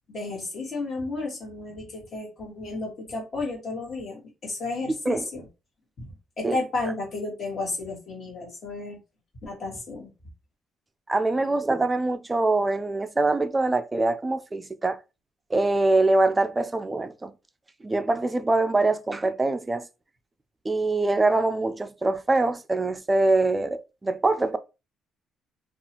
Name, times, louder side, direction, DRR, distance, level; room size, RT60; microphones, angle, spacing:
voice 1, 0.1-5.4 6.0-6.1 6.4-9.0 9.4-10.1, left 3 dB, 45° left, 1.4 m, -32 dB
voice 2, 11.1-15.0 15.5-17.3 17.8-19.9 20.6-24.6, right 2 dB, 15° right, 0.3 m, -24 dB
2.7 x 2.3 x 2.8 m
cardioid pair, 115°, 0 cm